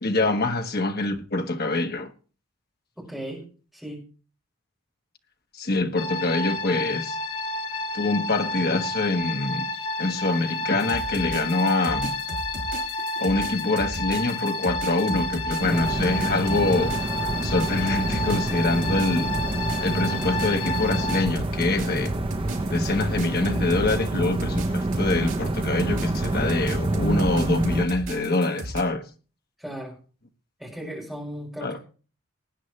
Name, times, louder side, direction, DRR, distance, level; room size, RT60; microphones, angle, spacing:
voice 1, 0.0-2.1 5.5-7.2 7.9-9.7 10.0-12.1 13.2-16.9 17.4-19.3 19.8-22.1 22.7-29.0 31.6-31.8, left 2 dB, 45° left, 1.3 m, -25 dB
voice 2, 3.0-3.5 3.7-4.0 29.6-30.0 30.6-31.9, equal, ahead, 5.8 m, -36 dB
sound 1, 6.0-21.3, left 2 dB, 75° left, 2.4 m, -30 dB
sound 2, 10.8-28.8, right 1 dB, 60° right, 4.8 m, -36 dB
sound 3, 15.6-27.8, right 2 dB, 25° right, 0.6 m, -27 dB
20.0 x 9.6 x 3.2 m
head